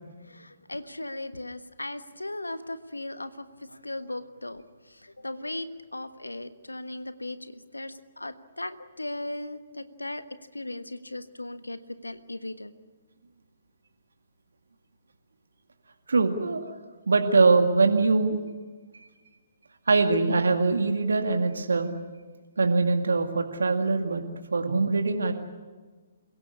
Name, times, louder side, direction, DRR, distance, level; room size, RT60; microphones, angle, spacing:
voice 1, 0.3-4.6 5.0-10.2 10.5-12.7, left 1 dB, 80° left, 12 dB, 1.4 m, -37 dB
voice 2, 16.1-16.6 17.1-18.4 18.9-19.1 19.9-21.9 22.6-24.2 24.5-25.3, right 3 dB, 65° right, 5 dB, 2.1 m, -22 dB
28.5 x 17.0 x 9.8 m, 1.4 s
figure-of-eight pair, 130°, 0 cm